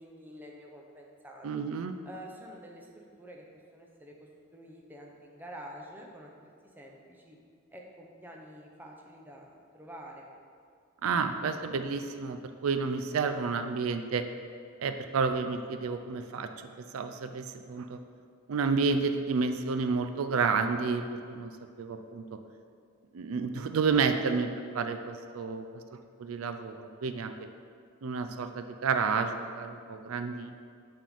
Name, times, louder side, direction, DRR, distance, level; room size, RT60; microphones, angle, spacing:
voice 1, 0.0-1.7 2.1-3.4 3.7-7.4 7.7-10.3, equal, 10° right, -1 dB, 0.6 m, -48 dB
voice 2, 1.4-2.0 11.0-14.2 14.8-16.5 16.9-18.0 18.5-21.5 21.8-22.2 23.1-24.5 24.7-25.8 26.2-27.3 28.0-30.5, right 5 dB, 80° right, 8 dB, 0.4 m, -30 dB
7.4 x 3.6 x 5.5 m, 2.2 s
head